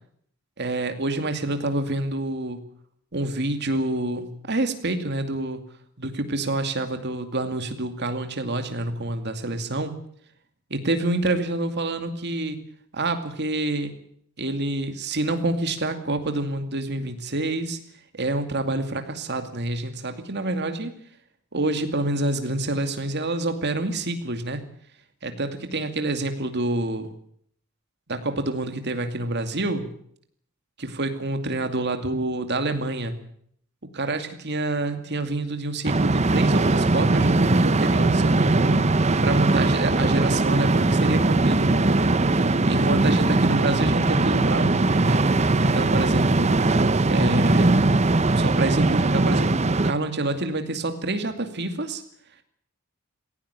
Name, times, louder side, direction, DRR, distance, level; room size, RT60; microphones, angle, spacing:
voice 1, 0.6-2.6 3.1-5.6 6.0-9.9 10.7-12.6 12.9-13.9 14.4-17.8 18.1-20.9 21.5-24.6 25.2-27.1 28.1-29.9 30.8-33.2 33.9-38.9 39.2-45.3 45.6-46.6 47.1-47.9 48.4-52.0, right 2 dB, 50° right, 7 dB, 2.5 m, -27 dB
sound 1, 35.8-49.9, right 2 dB, 30° right, 0.8 m, -20 dB
17.5 x 17.0 x 9.8 m, 0.66 s
head